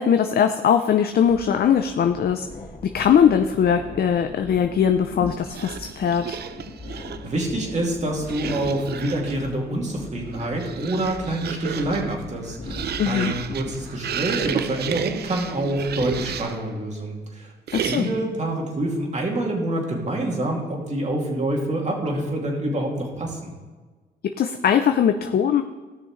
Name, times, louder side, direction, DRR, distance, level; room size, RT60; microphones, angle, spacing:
voice 1, 0.0-2.5 2.9-6.4 13.0-13.3 17.7-18.1 24.4-25.6, left 8 dB, 50° left, 7 dB, 0.6 m, -20 dB
sound 1, 1.2-16.5, left 3 dB, 35° left, 1.7 m, -40 dB
sound 2, 5.4-7.3 8.2-9.5 10.2-16.7 17.7-18.3, right 8 dB, 55° right, 0.6 m, -32 dB
voice 2, 6.9-23.6, right 1 dB, 35° right, 0 dB, 2.7 m, -27 dB
16.5 x 6.4 x 3.2 m, 1.3 s
cardioid pair, 90°, 20 cm